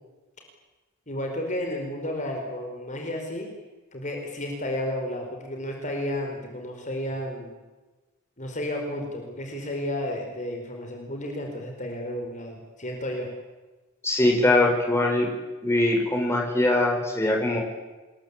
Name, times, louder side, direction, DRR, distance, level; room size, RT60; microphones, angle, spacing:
voice 1, 1.1-3.5 3.9-7.5 8.4-13.3, left 1 dB, 35° left, 2 dB, 5.0 m, -32 dB
voice 2, 14.0-15.3 15.6-17.6, left 1 dB, 10° left, 0 dB, 5.9 m, -22 dB
28.0 x 22.0 x 8.6 m, 1.2 s
head